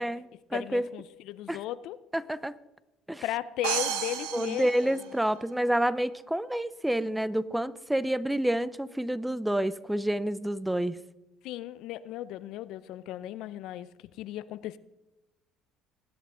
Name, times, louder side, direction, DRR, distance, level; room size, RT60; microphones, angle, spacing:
voice 1, 0.0-0.9 1.5-1.6 2.1-2.5 3.1-3.2 4.3-11.0, right 1 dB, 5° right, 0.5 m, -29 dB
voice 2, 0.5-2.0 3.2-5.0 11.4-14.8, left 13 dB, 70° left, 0.5 m, -36 dB
sound 1, 3.6-5.6, right 9 dB, 90° right, 1.2 m, -33 dB
20.5 x 8.1 x 3.7 m
supercardioid pair, 90°, 0 cm